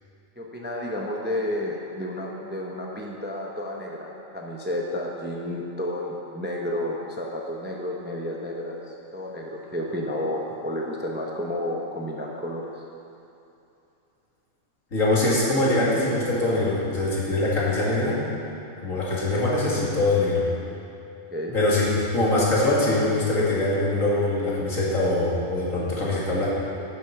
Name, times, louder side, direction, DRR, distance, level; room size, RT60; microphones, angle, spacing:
voice 1, 0.4-12.7 21.3-21.6, left 1 dB, 10° right, -2 dB, 0.7 m, -31 dB
voice 2, 14.9-18.2 18.8-20.4 21.5-26.5, left 2 dB, 75° left, -6 dB, 2.6 m, -23 dB
10.0 x 7.4 x 5.7 m, 2.8 s
omnidirectional pair, 1.4 m